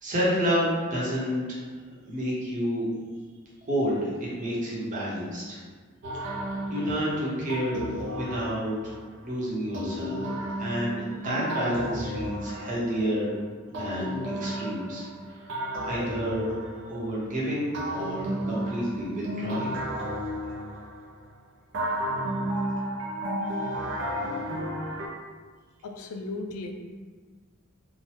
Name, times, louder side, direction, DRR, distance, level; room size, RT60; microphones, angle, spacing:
voice 1, 0.0-1.7 2.0-2.9 3.7-5.6 6.2-6.3 6.7-7.8 8.1-8.9 9.2-10.3 10.6-13.3 13.7-16.5 16.8-19.7 24.0-24.1, equal, 40° right, -6 dB, 0.8 m, -30 dB
sound 1, 6.0-9.1 9.7-13.3 13.7-17.3 17.7-21.2 21.7-25.1, equal, 60° right, 0.5 m, -33 dB
voice 2, 25.8-26.7, left 2 dB, 85° left, 4 dB, 0.3 m, -35 dB
2.9 x 2.1 x 3.1 m, 1.5 s
head